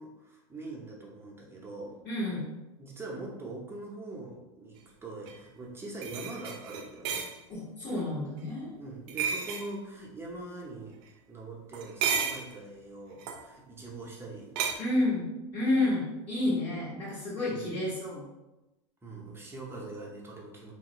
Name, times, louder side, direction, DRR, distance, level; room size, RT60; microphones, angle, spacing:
voice 1, 0.0-2.0 2.8-7.3 8.8-14.7 17.5-17.7 19.0-20.7, right 2 dB, 15° right, -2 dB, 0.7 m, -43 dB
voice 2, 2.0-2.4 7.5-8.7 14.8-15.3 15.5-18.3, left 2 dB, 40° left, -11 dB, 1.3 m, -30 dB
sound 1, 5.3-5.4 6.0-7.3 9.1-9.7 11.7-12.5 13.2-13.4 14.6-14.8, right 7 dB, 60° right, 0.4 m, -32 dB
2.9 x 2.4 x 2.9 m, 1.0 s
hypercardioid pair, 105°, 16 cm